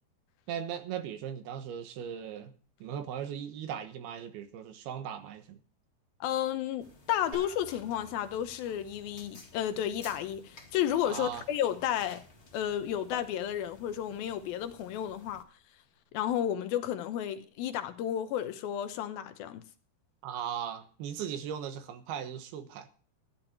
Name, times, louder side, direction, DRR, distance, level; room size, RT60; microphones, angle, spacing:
voice 1, 0.5-2.5 2.8-5.6 11.1-11.4 20.2-22.9, right 9 dB, 85° right, 3.2 m, -38 dB
voice 2, 6.2-12.2 12.5-15.4 16.1-19.6, left 10 dB, 80° left, 2.7 m, -32 dB
sound 1, 6.8-15.4, left 2 dB, 30° left, 1.3 m, -53 dB
sound 2, 7.3-12.9, left 1 dB, 55° right, 5.8 m, -53 dB
14.0 x 10.5 x 4.4 m
omnidirectional pair, 4.4 m